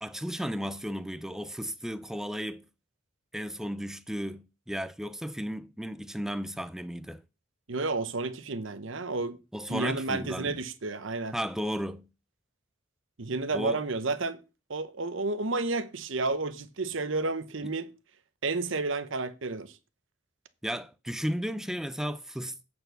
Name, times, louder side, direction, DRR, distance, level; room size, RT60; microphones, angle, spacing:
voice 1, 0.0-2.7 3.3-7.2 9.5-10.6 11.3-12.1 13.5-13.8 17.6-17.7 20.6-22.6, equal, ahead, 0.4 m, -34 dB
voice 2, 7.7-9.4 9.7-11.3 13.2-14.4 14.7-17.9 18.4-19.7, right 3 dB, 70° right, 0.9 m, -31 dB
8.6 x 4.5 x 6.7 m
head